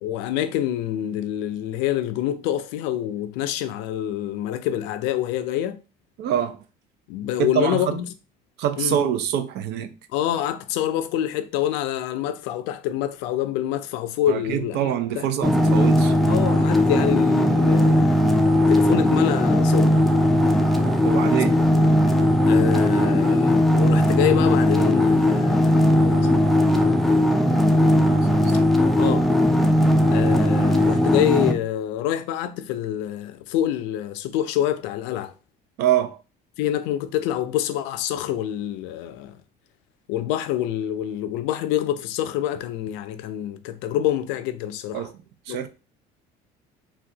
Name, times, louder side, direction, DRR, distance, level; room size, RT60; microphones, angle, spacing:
voice 1, 0.0-5.8 7.1-8.1 8.8-9.0 10.1-15.2 16.2-20.0 22.4-26.4 29.0-29.3 30.1-35.3 36.6-39.3 40.1-45.1 45.5-45.7, left 11 dB, 90° left, 0.4 m, -26 dB
voice 2, 6.2-6.6 7.4-8.0 8.6-9.9 14.3-16.1 21.0-21.6 28.4-28.6 35.8-36.2 44.9-45.1 45.5-45.7, right 10 dB, 70° right, 0.5 m, -25 dB
sound 1, 15.4-31.5, left 1 dB, ahead, 0.3 m, -18 dB
3.5 x 2.3 x 2.7 m
cardioid pair, 120°, 18 cm